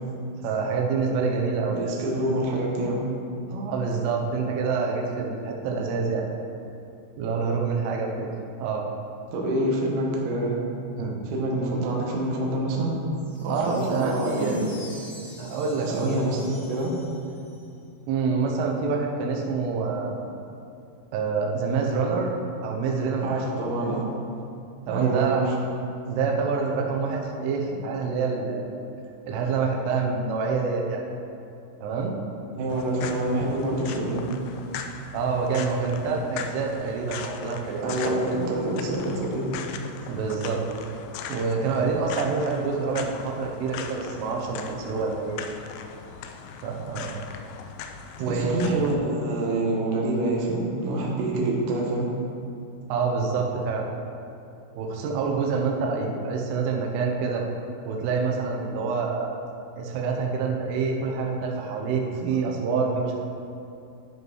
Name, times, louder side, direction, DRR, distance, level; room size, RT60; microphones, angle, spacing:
voice 1, 0.4-2.0 3.5-6.3 7.2-8.3 8.6-8.9 11.0-11.2 13.5-14.6 15.4-16.2 18.1-20.2 21.1-22.3 22.6-23.5 23.8-24.0 24.9-25.4 26.1-28.7 29.3-31.0 31.8-32.2 35.1-38.3 40.1-40.6 41.3-45.4 46.6-47.1 48.2-48.7 52.9-53.9 54.8-57.5 57.9-59.3 59.8-63.2, right 5 dB, 90° right, 0 dB, 3.5 m, -27 dB
voice 2, 1.7-3.0 9.3-10.6 11.3-12.9 13.4-14.7 15.8-16.9 23.2-24.1 24.9-25.5 32.5-34.2 37.8-39.5 48.3-52.2, right 1 dB, 65° right, -2 dB, 2.1 m, -26 dB
sound 1, 13.1-17.9, left 2 dB, 55° left, 3.2 m, -48 dB
sound 2, 32.7-49.0, left 6 dB, 80° left, 2.7 m, -39 dB
12.5 x 5.4 x 4.7 m, 2.6 s
omnidirectional pair, 5.6 m